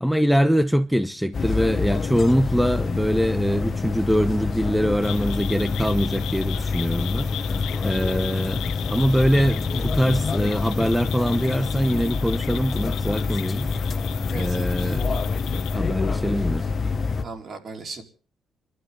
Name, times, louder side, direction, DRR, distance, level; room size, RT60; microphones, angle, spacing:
voice 1, 0.0-7.6 7.8-8.6 8.9-13.8 14.3-15.1 15.7-16.6, equal, ahead, 1.0 m, -23 dB
sound 1, 1.3-17.2, left 4 dB, 45° left, 1.4 m, -26 dB
sound 2, 5.0-15.8, left 12 dB, 85° left, 1.1 m, -37 dB
voice 2, 14.3-15.0 17.2-18.0, right 3 dB, 50° right, 4.6 m, -37 dB
30.0 x 12.5 x 3.9 m
cardioid pair, 90°, 0 cm